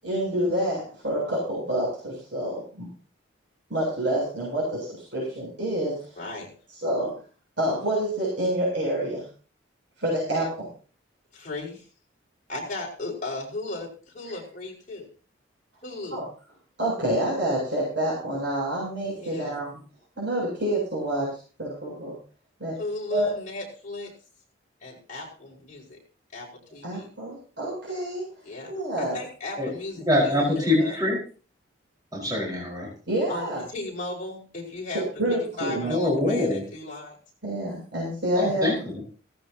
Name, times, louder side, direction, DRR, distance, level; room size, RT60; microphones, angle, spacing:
voice 1, 0.0-2.9 3.7-6.1 6.8-7.1 7.6-9.2 10.0-10.7 16.1-16.2 16.8-19.7 20.2-21.3 21.6-22.1 22.6-22.7 23.1-23.3 26.8-28.2 28.7-29.2 33.1-33.6 34.9-35.9 37.4-38.7, right 1 dB, 60° right, -5 dB, 7.5 m, -27 dB
voice 2, 6.2-6.5 11.3-11.8 12.5-15.1 15.8-16.3 19.1-19.5 22.8-24.1 24.8-26.0 26.3-27.1 28.4-31.0 33.3-35.0 35.6-37.2 38.4-38.5, left 2 dB, 40° left, -3 dB, 5.4 m, -36 dB
voice 3, 30.0-31.2 32.1-32.9 35.9-36.6 38.3-39.1, left 1 dB, 20° right, -4 dB, 5.0 m, -24 dB
17.5 x 15.0 x 2.9 m, 0.38 s
head